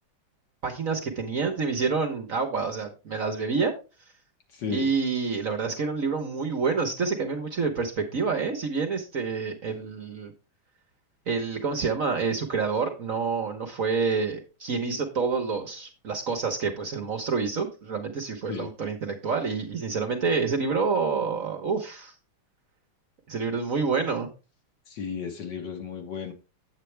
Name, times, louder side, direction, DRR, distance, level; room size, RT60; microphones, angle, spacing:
voice 1, 0.6-3.7 4.7-10.3 11.3-22.1 23.3-24.3, right 5 dB, 50° right, 1.3 m, -28 dB
voice 2, 4.5-4.9 18.5-18.7 24.9-26.3, left 6 dB, 60° left, 1.9 m, -34 dB
8.5 x 8.3 x 3.3 m
omnidirectional pair, 2.2 m